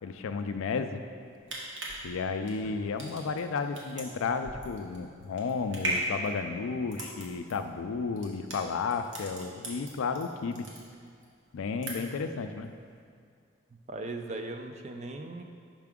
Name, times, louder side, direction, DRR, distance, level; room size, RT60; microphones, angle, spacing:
voice 1, 0.0-1.0 2.0-10.7 11.5-12.7, left 4 dB, 85° left, 8 dB, 0.4 m, -33 dB
sound 1, 1.2-10.2 10.5-11.3 11.6-12.3 12.6-12.7, right 2 dB, 75° right, 1.1 m, -38 dB
voice 2, 13.9-15.4, right 2 dB, 35° right, 5 dB, 0.3 m, -38 dB
5.9 x 5.7 x 3.6 m, 2.2 s
head